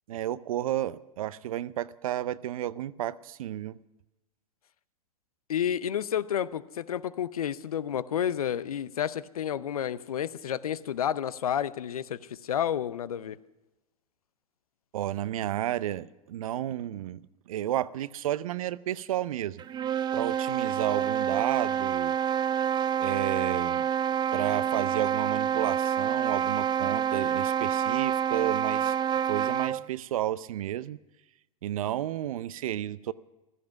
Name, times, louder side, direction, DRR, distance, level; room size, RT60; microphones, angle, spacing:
voice 1, 0.1-3.8 14.9-19.6 20.1-22.2 23.0-23.9 24.3-28.9 29.2-31.0 31.6-33.1, right 12 dB, 65° right, 18 dB, 0.6 m, -32 dB
voice 2, 5.5-13.4, left 9 dB, 75° left, 17 dB, 0.6 m, -30 dB
sound 1, 19.6-29.9, right 9 dB, 25° right, 0.5 m, -27 dB
15.5 x 13.5 x 5.9 m, 1.0 s
figure-of-eight pair, 90°, 19 cm